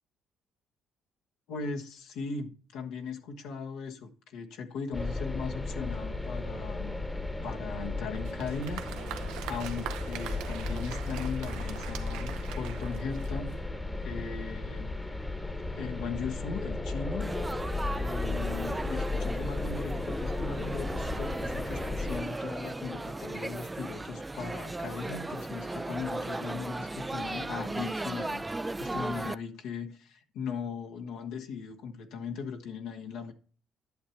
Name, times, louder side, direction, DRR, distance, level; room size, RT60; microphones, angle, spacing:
voice 1, 1.5-7.0 7.4-8.9 9.4-13.6 14.0-14.9 15.7-17.3 17.9-33.3, left 5 dB, 85° left, 1.4 m, -38 dB
sound 1, 4.9-22.2, left 2 dB, 15° left, 1.0 m, -35 dB
Applause, 8.1-13.7, right 11 dB, 90° right, 0.8 m, -43 dB
Laughter / Chatter / Crowd, 17.2-29.3, right 2 dB, 15° right, 0.4 m, -36 dB
11.0 x 7.1 x 4.5 m
cardioid pair, 90°, 0 cm